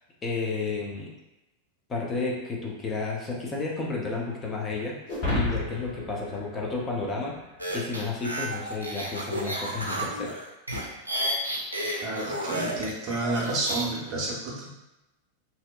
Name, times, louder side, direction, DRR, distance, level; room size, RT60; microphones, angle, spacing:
voice 1, 0.2-1.1 1.9-5.0 5.3-7.4 7.7-10.4, left 3 dB, 20° left, -2 dB, 0.5 m, -31 dB
sound 1, 5.1-7.6, left 2 dB, 45° left, 1.1 m, -31 dB
sound 2, 7.6-13.9, right 1 dB, 85° right, 0.4 m, -32 dB
voice 2, 12.0-14.7, right 2 dB, 35° right, -4 dB, 0.7 m, -30 dB
2.7 x 2.0 x 2.3 m, 0.95 s
figure-of-eight pair, 90°, 0 cm